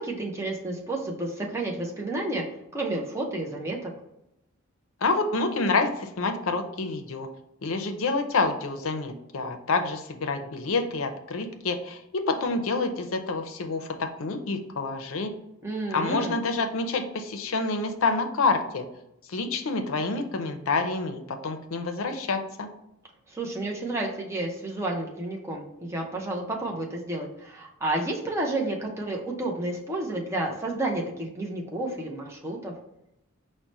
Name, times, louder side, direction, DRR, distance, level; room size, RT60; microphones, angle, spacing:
voice 1, 0.0-2.4 2.7-3.9 15.6-16.3 23.3-32.7, right 2 dB, 15° right, -1 dB, 0.6 m, -31 dB
voice 2, 5.0-7.3 7.6-15.3 15.9-18.8 19.3-22.7, left 3 dB, 75° left, 7 dB, 0.5 m, -28 dB
4.7 x 2.1 x 4.0 m, 0.84 s
head